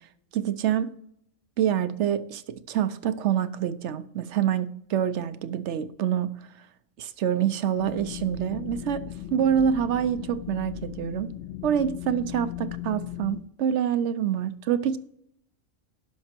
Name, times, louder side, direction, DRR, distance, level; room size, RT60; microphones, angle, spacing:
voice 1, 0.3-0.9 1.6-6.3 7.0-9.0 9.3-11.3 11.6-15.0, right 9 dB, 65° right, 0.9 m, -26 dB
sound 1, 7.8-13.4, left 13 dB, 65° left, 0.9 m, -37 dB
11.5 x 5.5 x 4.4 m
omnidirectional pair, 1.4 m